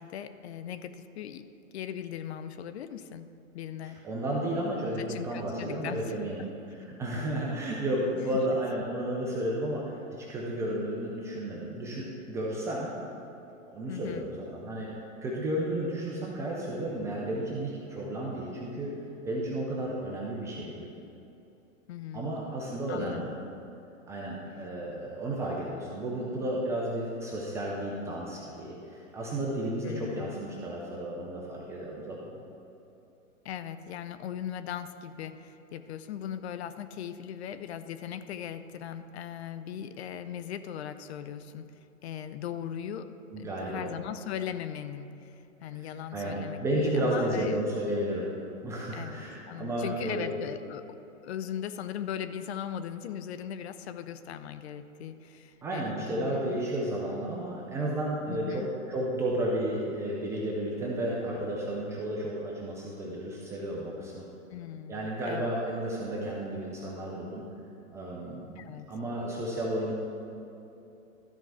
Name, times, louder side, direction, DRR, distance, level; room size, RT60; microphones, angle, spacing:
voice 1, 0.0-1.5 1.7-3.3 3.5-4.0 5.0-6.5 7.1-7.4 13.9-14.3 21.9-22.3 22.9-23.4 29.8-30.4 33.4-41.7 42.0-43.1 43.4-47.5 48.9-50.8 51.2-56.6 58.3-58.7 64.5-65.5 68.6-68.9, left 9 dB, 55° left, 11 dB, 0.6 m, -39 dB
voice 2, 3.8-6.4 7.0-12.9 13.7-14.9 15.2-18.9 19.3-20.9 22.1-23.3 24.1-32.4 43.3-43.8 45.7-48.3 48.6-50.3 55.6-64.2 64.9-67.4 67.9-69.9, right 1 dB, 10° right, -4 dB, 0.4 m, -32 dB
13.0 x 4.5 x 5.9 m, 3.0 s
hypercardioid pair, 130°, 40 cm